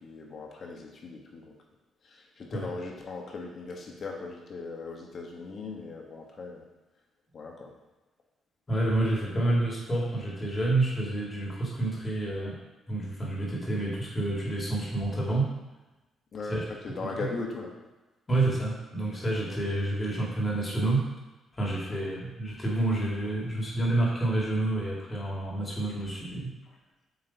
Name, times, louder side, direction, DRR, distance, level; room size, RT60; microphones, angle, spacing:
voice 1, 0.0-1.5 2.1-6.6 7.3-7.7 16.3-17.7, left 3 dB, 50° left, 0 dB, 1.4 m, -38 dB
voice 2, 8.7-12.6 12.9-15.5 16.4-16.6 17.0-17.3 18.3-21.0 21.5-26.5, right 2 dB, 25° left, -4 dB, 2.2 m, -29 dB
8.4 x 3.2 x 4.1 m, 1.1 s
cardioid pair, 95°, 0 cm